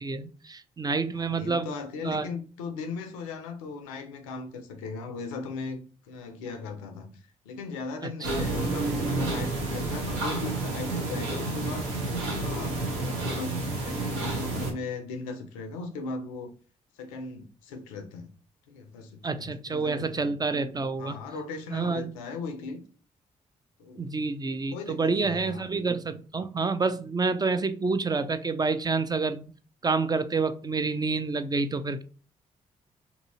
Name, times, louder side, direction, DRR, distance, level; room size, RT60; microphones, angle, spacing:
voice 1, 0.0-1.7 2.0-2.3 8.3-8.4 19.2-21.2 21.7-22.1 24.0-29.5 29.8-32.0, right 4 dB, 25° right, 0.4 m, -28 dB
voice 2, 1.1-11.9 12.4-16.5 17.0-18.3 18.7-20.3 21.0-22.8 23.8-24.1 24.7-25.7, left 4 dB, 90° left, 0.4 m, -38 dB
sound 1, 8.2-14.7, right 2 dB, 80° right, 0.8 m, -30 dB
2.7 x 2.7 x 2.7 m
hypercardioid pair, 40°, 17 cm